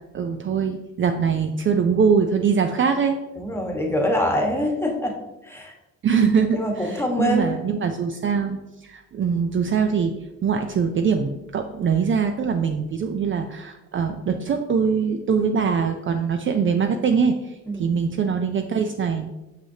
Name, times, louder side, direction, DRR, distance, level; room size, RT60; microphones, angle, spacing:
voice 1, 0.1-3.2 6.0-10.1 10.4-19.3, right 6 dB, 40° right, 6 dB, 0.4 m, -23 dB
voice 2, 3.4-5.2 5.4-5.7 6.5-7.5 12.7-12.8 17.7-18.0, left 1 dB, 10° left, 1 dB, 1.2 m, -25 dB
5.9 x 5.7 x 2.8 m, 1.0 s
cardioid pair, 90°, 30 cm